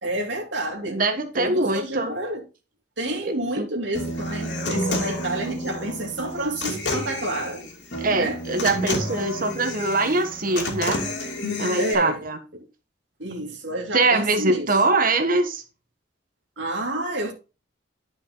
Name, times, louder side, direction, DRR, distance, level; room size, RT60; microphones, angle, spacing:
voice 1, 0.0-1.0 1.3-2.4 3.0-7.6 8.1-8.4 11.8-12.2 12.5-12.6 13.2-14.7 16.6-17.3, right 1 dB, 75° right, 2.5 m, -29 dB
voice 2, 0.9-2.1 3.2-3.7 8.0-11.0 11.6-12.4 13.9-15.6, right 2 dB, 50° right, 1.2 m, -23 dB
Human voice / Acoustic guitar, 3.9-11.9, left 1 dB, 70° left, 2.6 m, -30 dB
10.5 x 5.7 x 3.8 m
head